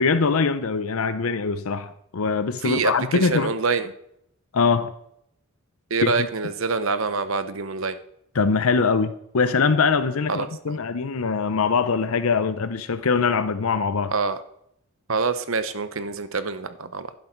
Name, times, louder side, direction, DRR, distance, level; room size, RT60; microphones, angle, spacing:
voice 1, 0.0-3.5 4.5-4.9 6.0-6.3 8.3-14.1, left 4 dB, 80° left, 11 dB, 0.6 m, -22 dB
voice 2, 2.6-3.9 5.9-8.0 10.3-10.8 14.1-14.4 15.1-17.1, right 4 dB, 70° right, 11 dB, 0.9 m, -26 dB
11.5 x 11.0 x 4.5 m, 0.74 s
head